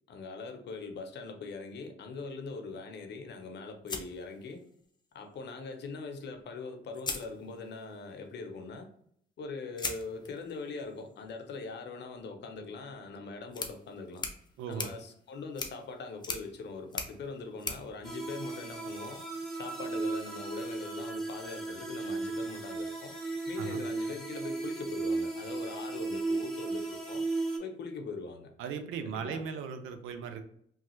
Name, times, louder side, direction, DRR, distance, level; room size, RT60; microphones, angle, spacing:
voice 1, 0.1-4.6 5.1-8.9 9.4-14.3 14.7-19.2 19.5-23.1 23.5-27.2 27.6-28.5 29.0-29.4, left 4 dB, 60° left, 5 dB, 0.7 m, -42 dB
sound 1, 3.9-5.0 6.3-6.4 6.9-7.9 9.8-19.0, left 3 dB, 20° left, 0.5 m, -42 dB
voice 2, 14.6-14.9 23.6-23.8 28.6-30.4, right 6 dB, 90° right, 7 dB, 0.5 m, -37 dB
sound 2, 18.0-27.6, right 3 dB, ahead, 0.9 m, -35 dB
3.0 x 2.3 x 3.0 m, 0.66 s
cardioid pair, 90°, 20 cm